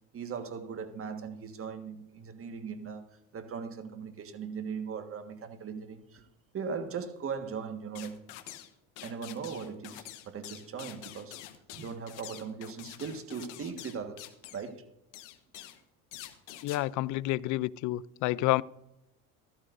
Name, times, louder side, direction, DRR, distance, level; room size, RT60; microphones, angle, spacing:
voice 1, 0.1-6.2 6.5-8.2 9.0-11.4 11.7-14.9, right 6 dB, 40° right, 1.6 m, -39 dB
sound 1, 7.9-8.7 9.0-14.7 15.1-15.8 16.1-16.8, left 13 dB, 90° left, 1.1 m, -47 dB
voice 2, 16.6-18.6, left 17 dB, 60° left, 0.5 m, -29 dB
14.5 x 14.0 x 2.6 m
supercardioid pair, 85°, 34 cm